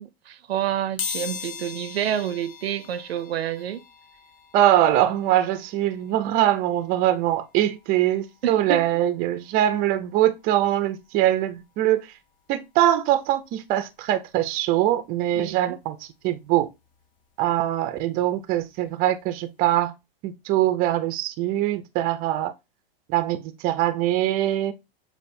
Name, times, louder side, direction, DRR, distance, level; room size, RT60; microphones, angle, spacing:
voice 1, 0.0-3.8 8.4-8.9 15.4-15.8, right 10 dB, 85° right, 0.5 m, -28 dB
sound 1, 1.0-11.7 12.1-12.2 13.4-13.5 13.8-15.8 16.2-18.8 19.2-19.4 19.7-19.8, left 7 dB, 30° left, 0.6 m, -41 dB
voice 2, 4.5-12.0 12.5-16.0 16.2-16.7 17.4-19.9 20.2-22.5 23.1-24.7, right 13 dB, 30° right, 0.5 m, -22 dB
6.6 x 2.4 x 2.6 m
hypercardioid pair, 120°, 30 cm